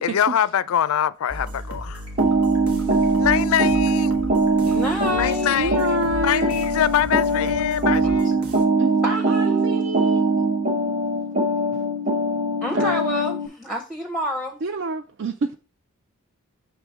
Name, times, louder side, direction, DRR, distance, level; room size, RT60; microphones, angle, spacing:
voice 1, 0.0-2.0 3.2-4.1 5.1-8.3, left 9 dB, 80° left, 0.4 m, -23 dB
sound 1, 1.3-8.6, equal, 85° right, 1.4 m, -35 dB
sound 2, 2.2-13.5, right 2 dB, 30° right, 0.9 m, -22 dB
voice 2, 4.7-5.5 8.0-8.2 9.0-9.9 12.6-14.6, equal, 5° left, 0.6 m, -28 dB
voice 3, 5.6-6.5 8.8-10.2 12.7-13.0 14.6-15.5, right 3 dB, 60° right, 0.4 m, -28 dB
6.4 x 3.4 x 4.7 m
head